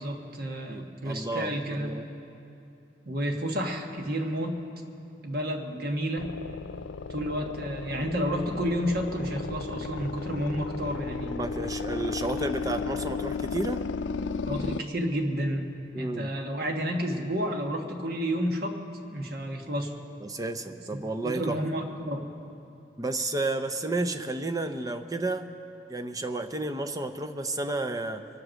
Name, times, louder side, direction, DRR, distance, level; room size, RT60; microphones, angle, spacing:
voice 1, 0.0-1.9 3.0-4.6 5.2-6.3 7.1-11.4 14.5-18.7 19.1-19.9 20.9-22.3, equal, 55° right, 3 dB, 1.4 m, -31 dB
voice 2, 0.7-2.1 11.2-13.8 15.9-16.3 20.2-21.6 23.0-25.5 25.9-28.2, right 2 dB, 20° right, 8 dB, 0.6 m, -32 dB
sound 1, 6.2-14.8, left 4 dB, 90° left, 0.4 m, -34 dB
24.0 x 7.9 x 6.4 m, 2.7 s
head